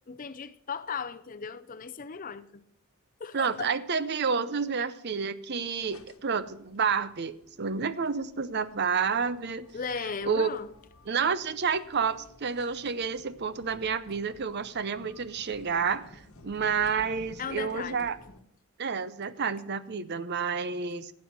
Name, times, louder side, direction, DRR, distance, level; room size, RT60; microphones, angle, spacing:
voice 1, 0.1-2.6 3.2-3.7 9.7-10.7 17.4-18.1, left 6 dB, 35° left, 0.5 m, -37 dB
voice 2, 3.3-9.7 10.0-10.5 11.1-18.2 18.8-21.1, right 5 dB, 50° right, 0.6 m, -30 dB
sound 1, 5.6-18.4, left 1 dB, 70° left, 1.2 m, -54 dB
12.0 x 8.4 x 6.1 m
head